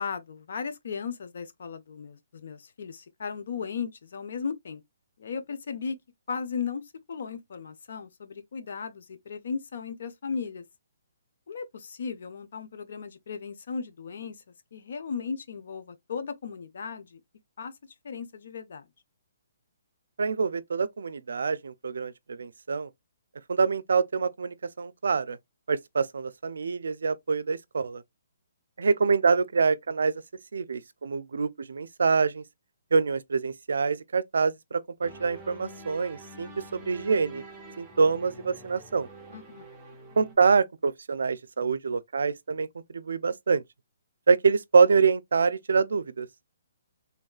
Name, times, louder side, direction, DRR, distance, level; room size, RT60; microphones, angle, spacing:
voice 1, 0.0-4.8 5.2-6.0 6.3-10.6 11.5-17.2 17.6-17.7 18.0-18.9 39.3-39.7, left 5 dB, 65° left, 0.6 m, -36 dB
voice 2, 20.2-22.9 23.5-25.4 25.7-28.0 28.8-30.1 30.5-32.4 32.9-37.4 37.8-39.1 40.2-42.7 42.9-43.6 44.3-46.3, right 5 dB, 80° right, 0.4 m, -25 dB
sound 1, 35.0-40.3, right 2 dB, 5° right, 0.9 m, -46 dB
3.4 x 2.3 x 2.3 m
hypercardioid pair, 160°, 0 cm